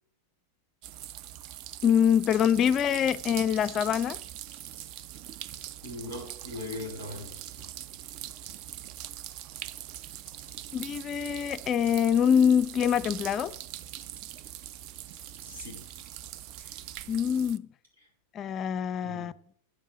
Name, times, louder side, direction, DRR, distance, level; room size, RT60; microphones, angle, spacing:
sound 1, 0.8-17.6, right 12 dB, 40° right, 0.5 m, -42 dB
voice 1, 1.8-4.2 10.7-13.6 17.1-17.7 18.3-19.3, left 8 dB, 30° left, 0.4 m, -25 dB
sound 2, 2.3-4.1 4.5-5.2 5.5-5.9 6.2-6.3 6.7-7.7 7.9-10.7 11.2-11.3 11.8-12.5 12.8-13.5 13.8-14.7 15.0-17.4, right 3 dB, 60° right, 3.0 m, -54 dB
voice 2, 5.8-7.3 15.4-15.9 19.0-19.3, left 2 dB, 75° right, 6.2 m, -39 dB
9.8 x 7.2 x 7.0 m
figure-of-eight pair, 90°, 0 cm